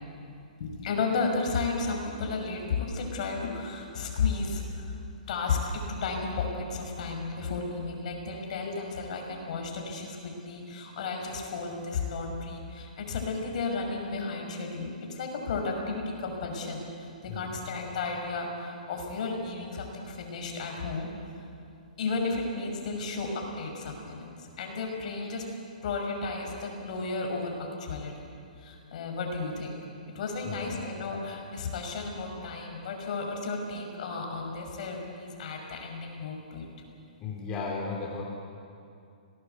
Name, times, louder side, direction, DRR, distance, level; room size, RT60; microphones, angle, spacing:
voice 1, 0.6-4.9 5.3-21.1 22.0-25.4 25.8-28.3 28.6-29.8 30.1-36.6, left 4 dB, 55° left, 2 dB, 6.0 m, -33 dB
voice 2, 17.3-17.7 30.4-30.8 37.2-38.2, left 4 dB, 25° left, -2 dB, 3.2 m, -35 dB
26.0 x 19.0 x 8.2 m, 2.5 s
hypercardioid pair, 140°, 5 cm